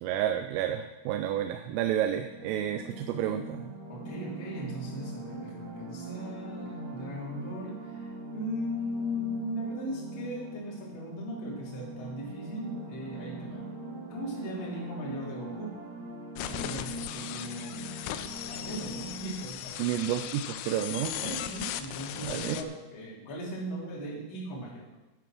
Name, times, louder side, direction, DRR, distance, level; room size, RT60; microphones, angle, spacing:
voice 1, 0.0-3.7 19.8-21.4 22.2-22.6, right 11 dB, 90° right, 7 dB, 3.2 m, -30 dB
sound 1, 2.1-19.5, right 2 dB, 60° right, 1.3 m, -42 dB
voice 2, 3.9-13.7 14.1-15.8 16.5-17.9 18.5-19.9 21.2-25.0, equal, 30° left, -5 dB, 2.8 m, -38 dB
sound 2, 16.4-22.6, left 12 dB, 80° left, 2.9 m, -38 dB
9.7 x 9.1 x 6.1 m, 1.1 s
omnidirectional pair, 5.7 m